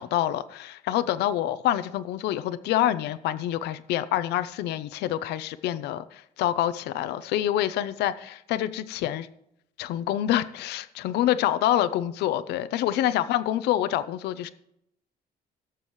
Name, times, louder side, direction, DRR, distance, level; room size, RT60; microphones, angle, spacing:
voice 1, 0.0-9.3 9.8-14.5, left 12 dB, 80° left, 0.7 m, -26 dB
18.0 x 6.9 x 3.2 m
cardioid pair, 110°, 17 cm